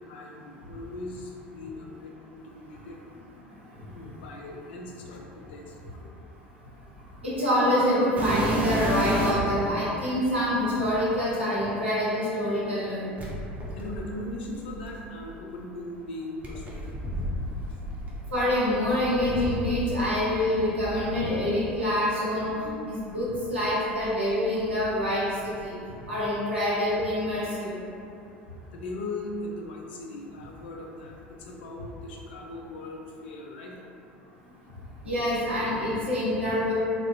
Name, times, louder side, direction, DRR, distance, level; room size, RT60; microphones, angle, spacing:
voice 1, 0.1-3.0 3.9-6.1 13.7-17.0 17.7-17.8 28.7-33.8 34.6-34.7, left 2 dB, 65° left, -1 dB, 0.3 m, -39 dB
voice 2, 7.2-13.1 18.3-25.7 26.1-27.7 35.0-36.7, left 1 dB, 85° right, -10 dB, 0.7 m, -26 dB
sound 1, 8.2-9.6 10.4-10.5 13.2-15.3 16.4-20.2 20.4-21.5 22.3-22.4 23.0-23.1 23.8-24.9 25.1-25.7 27.0-27.1, right 1 dB, 25° right, 0.5 m, -32 dB
2.4 x 2.0 x 2.5 m, 2.6 s
figure-of-eight pair, 70°, 6 cm